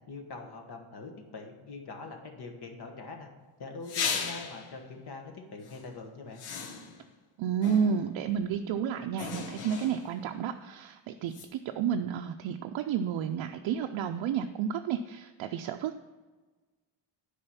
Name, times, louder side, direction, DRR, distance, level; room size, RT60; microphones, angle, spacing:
voice 1, 0.1-3.3 3.6-6.4, left 3 dB, 50° left, 4 dB, 1.4 m, -43 dB
sound 1, 3.8-4.7 5.6-5.8 6.4-7.1 7.6-8.2 9.2-10.2 11.3-11.5, left 6 dB, 85° left, 1.1 m, -36 dB
voice 2, 7.4-16.0, right 7 dB, 70° right, 5 dB, 0.6 m, -31 dB
8.8 x 5.0 x 5.7 m, 1.3 s
cardioid pair, 140°, 48 cm